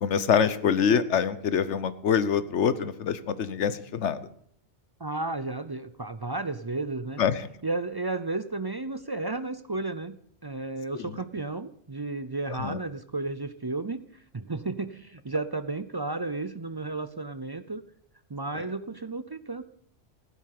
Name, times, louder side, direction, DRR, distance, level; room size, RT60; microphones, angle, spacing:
voice 1, 0.0-4.3 7.2-7.4 10.9-11.1 12.6-12.8, left 7 dB, 75° left, 15 dB, 1.2 m, -25 dB
voice 2, 5.0-7.2 7.6-10.2 10.4-14.0 14.3-17.8 18.3-19.6, right 3 dB, 35° right, 12 dB, 0.4 m, -33 dB
15.0 x 11.0 x 6.7 m, 0.66 s
omnidirectional pair, 1.2 m